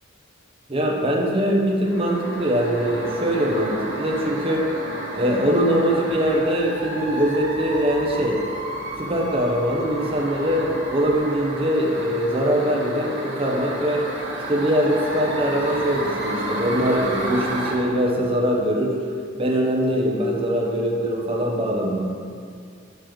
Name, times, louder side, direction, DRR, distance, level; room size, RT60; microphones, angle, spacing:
voice 1, 0.7-4.7 5.1-8.4 9.0-14.0 14.5-19.0 19.4-22.0, equal, 25° right, -1 dB, 0.8 m, -22 dB
sound 1, 1.8-17.7, right 1 dB, 65° right, 1.6 m, -31 dB
7.8 x 6.7 x 3.1 m, 2.2 s
head